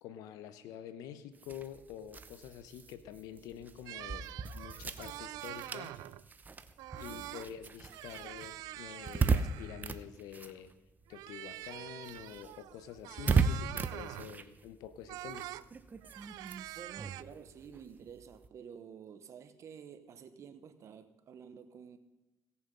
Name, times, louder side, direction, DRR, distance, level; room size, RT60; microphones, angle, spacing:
voice 1, 0.0-4.3 4.5-6.0 7.0-10.7 11.1-15.5, left 10 dB, 85° left, 0.9 m, -47 dB
sound 1, 1.4-11.3 11.5-18.5, right 5 dB, 30° right, 0.7 m, -37 dB
sound 2, 3.9-6.3 6.8-7.5 7.8-10.0 11.1-14.4 15.1-15.7 16.0-17.2, right 15 dB, 80° right, 0.4 m, -46 dB
voice 2, 16.7-22.0, right 7 dB, 55° right, 1.0 m, -51 dB
16.5 x 6.9 x 5.5 m
cardioid pair, 95°, 6 cm